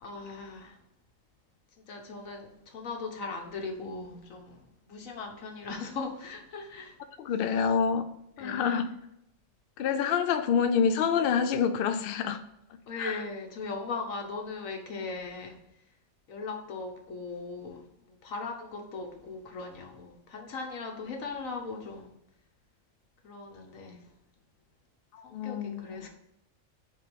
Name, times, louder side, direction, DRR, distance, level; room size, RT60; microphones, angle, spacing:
voice 1, 0.0-0.8 1.9-7.0 7.5-7.7 8.4-8.8 12.9-15.6 16.3-22.2 23.2-24.1 25.2-26.1, left 3 dB, 85° left, 1.5 m, -39 dB
voice 2, 7.2-8.0 8.4-8.9 9.8-12.4 13.0-13.2 25.1-26.1, left 7 dB, 55° left, 0.7 m, -27 dB
4.9 x 4.4 x 5.2 m
omnidirectional pair, 1.4 m